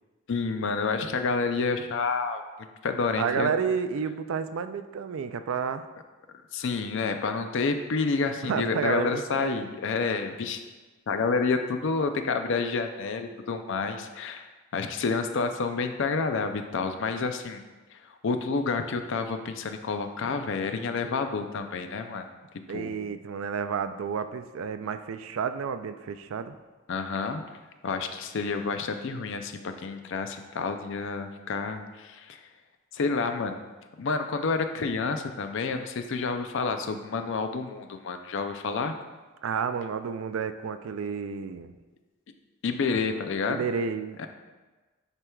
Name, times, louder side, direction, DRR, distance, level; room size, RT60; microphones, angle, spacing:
voice 1, 0.3-2.4 2.8-3.5 6.5-10.6 11.1-17.6 17.9-22.3 22.7-22.9 26.9-27.4 27.8-32.5 32.9-33.6 34.0-38.9 42.6-43.7 44.2-44.3, left 4 dB, 60° left, 7 dB, 0.5 m, -29 dB
voice 2, 3.2-5.9 8.5-9.6 22.7-26.6 39.4-41.7 43.5-44.3, right 6 dB, 70° right, 10 dB, 0.3 m, -31 dB
9.7 x 4.5 x 2.3 m, 1.2 s
head